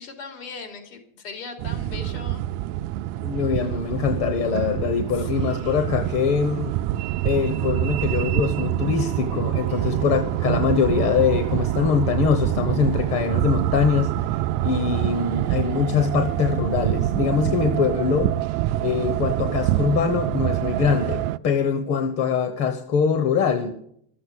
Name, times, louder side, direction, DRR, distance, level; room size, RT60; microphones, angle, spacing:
voice 1, 0.0-2.4 5.1-6.0 9.7-10.3, left 5 dB, 85° left, 5 dB, 3.2 m, -39 dB
sound 1, 1.6-21.4, right 14 dB, 50° right, 0.4 m, -25 dB
voice 2, 3.2-6.8 7.2-14.1 14.6-18.3 18.8-23.7, left 6 dB, 45° left, 8 dB, 1.0 m, -23 dB
13.0 x 7.8 x 8.2 m, 0.70 s
cardioid pair, 165°, 32 cm